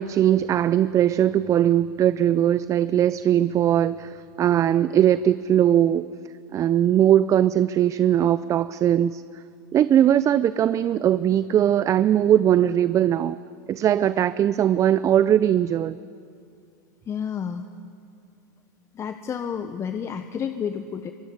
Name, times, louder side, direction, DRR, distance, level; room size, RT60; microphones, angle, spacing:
voice 1, 0.0-6.1 6.5-9.2 9.7-13.4 13.7-16.0, right 10 dB, 30° right, 15 dB, 0.6 m, -20 dB
voice 2, 17.1-17.7 18.9-21.1, left 7 dB, 25° left, 8 dB, 1.1 m, -30 dB
24.0 x 21.5 x 9.9 m, 2.3 s
hypercardioid pair, 105°, 10 cm